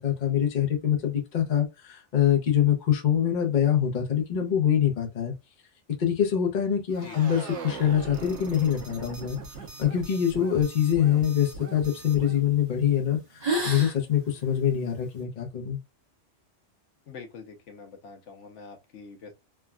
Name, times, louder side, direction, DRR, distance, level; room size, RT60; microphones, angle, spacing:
voice 1, 0.0-5.3 6.0-9.4 9.8-15.8, left 9 dB, 45° left, 0.8 m, -24 dB
sound 1, 6.9-12.4, right 4 dB, 75° right, 1.1 m, -40 dB
sound 2, 9.4-12.1 12.7-13.0 13.2-15.2, right 1 dB, 35° right, 1.2 m, -35 dB
voice 2, 17.1-19.3, left 5 dB, 80° left, 1.1 m, -45 dB
3.4 x 2.2 x 2.3 m
omnidirectional pair, 1.2 m